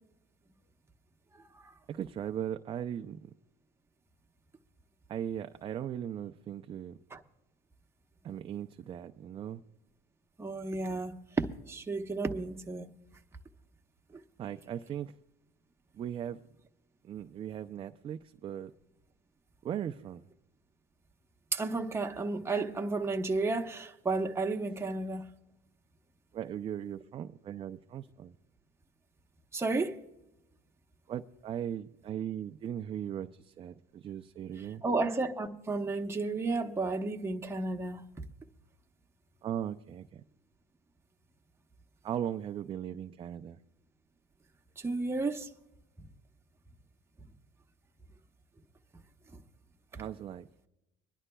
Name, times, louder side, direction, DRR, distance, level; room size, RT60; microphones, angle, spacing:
voice 1, 1.9-3.3 5.1-7.0 8.2-9.6 14.4-15.1 15.9-16.4 17.0-18.7 19.6-20.3 26.3-28.4 31.1-34.8 39.4-40.2 42.0-43.6 49.9-50.5, right 9 dB, 30° right, 0.4 m, -38 dB
voice 2, 10.4-11.1 11.7-12.9 21.5-25.3 29.5-30.0 34.8-38.0 44.8-45.5, right 3 dB, 15° right, 0.9 m, -32 dB
25.0 x 11.0 x 2.2 m
cardioid pair, 115°, 17 cm